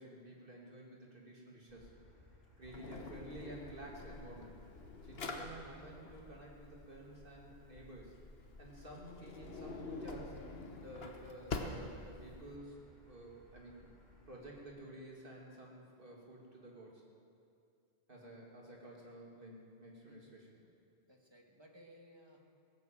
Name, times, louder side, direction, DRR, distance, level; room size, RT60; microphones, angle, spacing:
voice 1, 0.0-1.9 2.6-4.6 5.0-8.1 8.6-10.4 10.7-12.8 13.1-13.8 14.3-17.0 18.1-20.6, right 1 dB, 60° right, -2 dB, 2.9 m, -52 dB
Motor vehicle (road), 1.7-14.7, left 1 dB, 50° left, 4.6 m, -64 dB
Drawer open or close, 2.6-12.6, left 3 dB, 70° left, 1.4 m, -47 dB
voice 2, 20.0-20.4 21.1-22.4, equal, 25° right, 1 dB, 1.7 m, -61 dB
17.0 x 10.5 x 7.7 m, 2.5 s
omnidirectional pair, 1.1 m